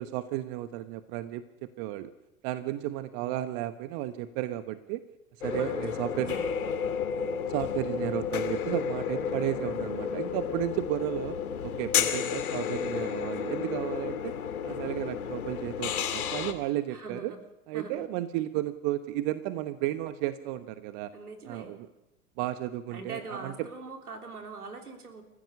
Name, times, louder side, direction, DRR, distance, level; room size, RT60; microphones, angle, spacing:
voice 1, 0.0-2.1 2.4-5.0 5.4-6.4 7.5-11.4 11.6-14.3 14.6-17.3 17.7-21.1 21.4-21.9 22.4-23.5, right 14 dB, 40° right, 12 dB, 1.2 m, -33 dB
sound 1, 5.4-16.5, left 7 dB, 70° left, 2.4 m, -32 dB
voice 2, 5.5-5.8 6.1-6.5 16.9-17.4 17.7-18.0 21.1-21.8 22.9-25.2, right 4 dB, 80° right, 5 dB, 3.6 m, -42 dB
28.5 x 15.0 x 6.6 m, 0.97 s
figure-of-eight pair, 95°, 45 cm